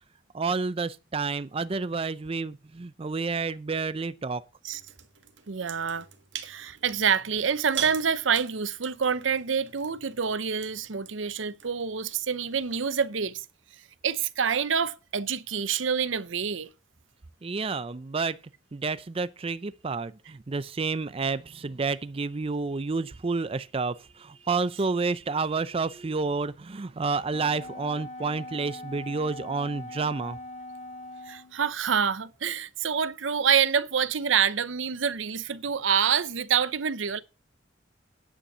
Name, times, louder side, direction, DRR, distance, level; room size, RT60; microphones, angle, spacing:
voice 1, 0.3-4.4 17.4-18.4 18.7-30.4, right 4 dB, 30° right, 0.5 m, -30 dB
sound 1, 4.7-13.0, right 9 dB, 65° right, 1.7 m, -43 dB
voice 2, 5.5-6.1 6.4-13.4 14.0-16.7 31.3-37.2, right 7 dB, 85° right, 0.8 m, -27 dB
Wind instrument woodwind instrument, 27.3-31.6, left 1 dB, 35° left, 1.9 m, -41 dB
9.8 x 8.7 x 5.5 m
head